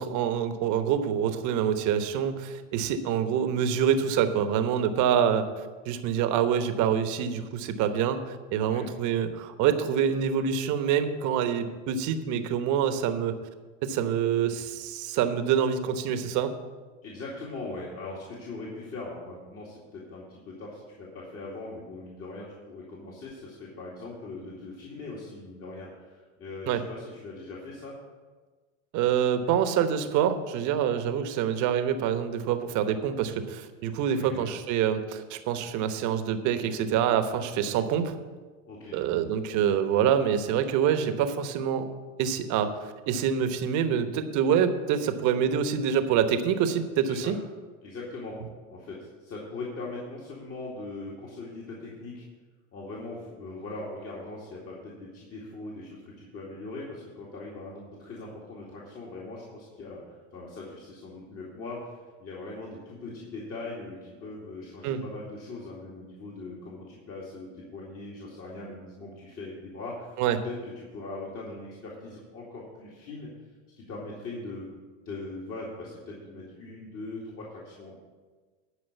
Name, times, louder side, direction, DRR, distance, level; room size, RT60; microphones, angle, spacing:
voice 1, 0.0-13.4 13.8-16.5 26.7-26.8 28.9-38.2 38.9-41.9 42.2-47.4 64.8-65.0 70.2-70.4, right 8 dB, 55° right, 9 dB, 1.1 m, -26 dB
voice 2, 17.0-28.0 34.1-34.5 38.7-39.0 47.1-47.3 47.8-48.4 48.7-52.3 52.7-70.2 70.4-73.3 73.8-74.7 75.0-78.0, left 2 dB, 40° left, -5 dB, 2.4 m, -40 dB
11.5 x 4.9 x 8.2 m, 1.4 s
supercardioid pair, 105°, 36 cm